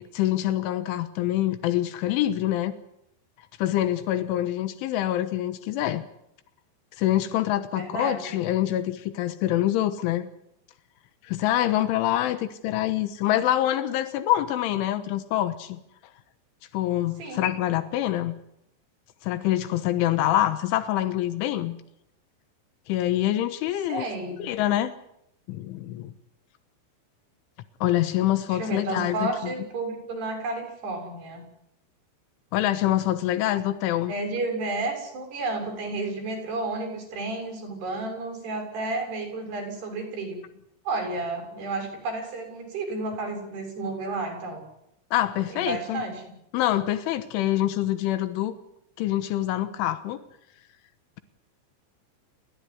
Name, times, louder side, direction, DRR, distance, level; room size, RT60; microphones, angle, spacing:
voice 1, 0.0-2.7 3.6-6.0 7.0-10.3 11.2-15.8 16.7-18.4 19.2-21.8 22.9-24.1 24.4-24.9 25.5-26.1 27.8-29.5 32.5-34.1 45.1-46.0 46.5-48.5 49.0-50.2, left 13 dB, 85° left, 11 dB, 3.6 m, -25 dB
voice 2, 7.7-8.3 17.2-17.4 23.9-24.4 28.5-31.4 34.1-40.4 40.9-44.6 45.5-46.2, right 2 dB, 60° right, 4 dB, 8.8 m, -31 dB
29.0 x 14.0 x 9.7 m, 0.79 s
omnidirectional pair, 5.4 m